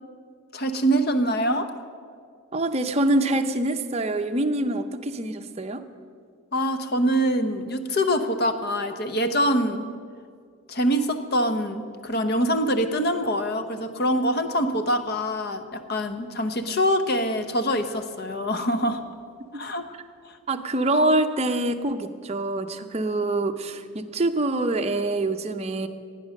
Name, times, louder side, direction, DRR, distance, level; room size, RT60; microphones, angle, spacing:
voice 1, 0.5-1.7 6.5-9.9 10.7-19.0 19.5-19.8 20.2-20.4, equal, 45° left, 8 dB, 0.8 m, -24 dB
voice 2, 2.5-5.8 20.5-25.9, right 2 dB, 30° right, 6 dB, 0.6 m, -25 dB
16.5 x 9.2 x 6.5 m, 2.2 s
head